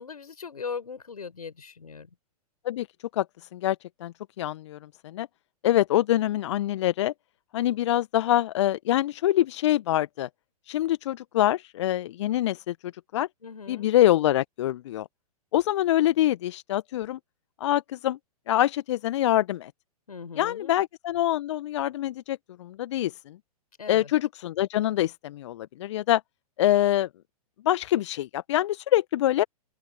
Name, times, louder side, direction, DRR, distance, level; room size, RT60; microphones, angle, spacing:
voice 1, 0.0-2.1 13.4-13.9 20.1-20.8 23.8-24.1, left 5 dB, 70° left, 6.1 m, -39 dB
voice 2, 3.5-5.3 5.6-7.1 7.5-10.3 10.7-12.8 13.1-13.3 13.7-15.1 15.5-17.2 17.6-18.2 18.5-19.7 20.4-23.4 23.9-26.2 26.6-27.1 27.6-29.4, left 13 dB, 50° left, 1.1 m, -25 dB
open air
figure-of-eight pair, 115°, 20 cm